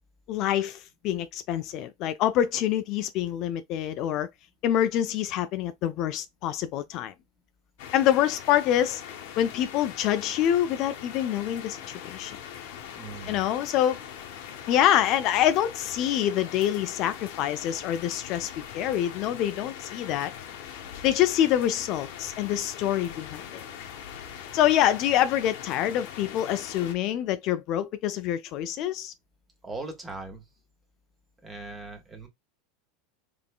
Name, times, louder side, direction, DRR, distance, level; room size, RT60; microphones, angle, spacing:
voice 1, 0.3-4.3 4.6-7.1 7.9-9.0 9.4-12.4 13.3-14.0 14.7-20.3 21.0-23.6 24.5-29.1, left 11 dB, 50° left, 0.4 m, -26 dB
sound 1, 7.8-26.9, left 9 dB, 70° left, 0.9 m, -41 dB
voice 2, 12.9-13.4 29.6-30.4 31.4-32.3, right 3 dB, 20° right, 1.3 m, -39 dB
3.6 x 3.5 x 2.2 m
supercardioid pair, 125°, 0 cm